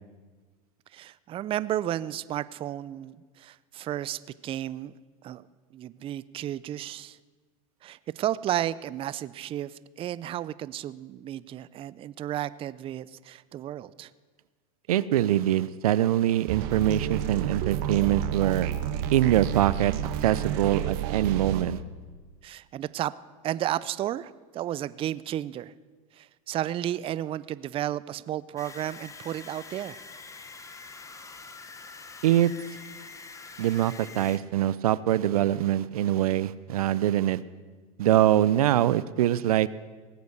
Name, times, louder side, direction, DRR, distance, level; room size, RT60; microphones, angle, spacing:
voice 1, 0.9-4.9 5.2-5.4 5.7-7.2 7.8-14.1 22.4-23.1 23.4-25.7 26.1-30.0, right 12 dB, 30° right, 18 dB, 0.4 m, -33 dB
voice 2, 14.9-18.7 19.1-19.9 20.2-21.8 32.2-32.5 33.6-37.4 38.0-39.7, right 12 dB, 90° right, 18 dB, 0.5 m, -23 dB
sound 1, 16.5-21.6, right 10 dB, 60° right, 1.1 m, -30 dB
sound 2, 28.6-34.4, left 4 dB, 15° left, 1.0 m, -45 dB
18.5 x 8.1 x 6.6 m, 1.4 s
hypercardioid pair, 105°, 18 cm